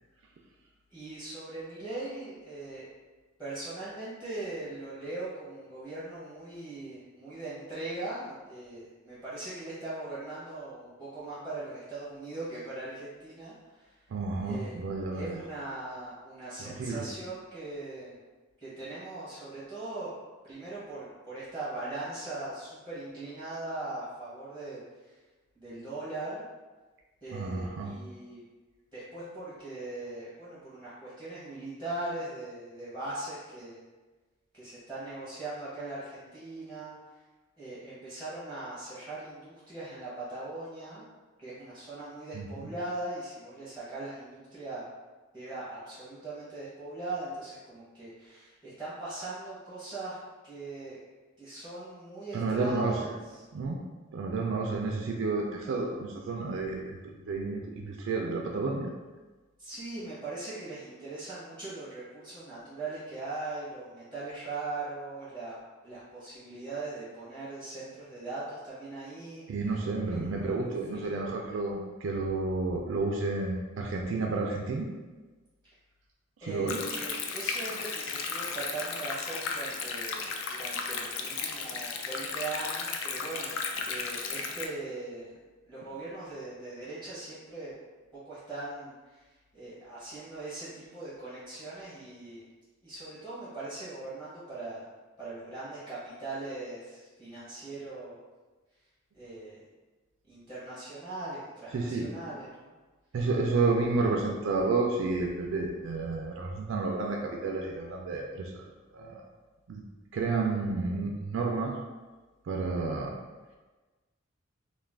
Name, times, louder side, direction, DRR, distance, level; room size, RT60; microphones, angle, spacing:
voice 1, 0.9-2.9 3.4-13.9 14.5-14.7 15.1-18.2 18.6-20.1 20.4-25.2 25.6-26.4 27.2-28.4 28.9-33.8 34.5-37.0 37.6-41.1 41.4-44.9 45.3-50.2 50.4-51.0 51.4-53.1 59.6-65.5 65.8-69.5 70.1-71.3 76.4-83.5 83.9-85.4 85.7-87.7 88.1-92.4 92.8-94.8 95.2-98.2 99.1-99.6 100.3-102.7, right 2 dB, 5° left, -11 dB, 0.7 m, -40 dB
voice 2, 14.1-15.5 16.6-17.1 27.3-27.9 42.3-42.7 52.3-53.1 53.5-53.8 54.1-58.9 69.5-74.9 76.4-76.8 101.7-102.1 103.1-108.7 108.9-109.2 109.7-109.8 110.1-111.7 112.5-113.1, right 3 dB, 60° right, 0 dB, 0.3 m, -31 dB
Stream, 76.7-84.7, left 5 dB, 70° left, 0.3 m, -35 dB
2.3 x 2.2 x 3.3 m, 1.3 s
head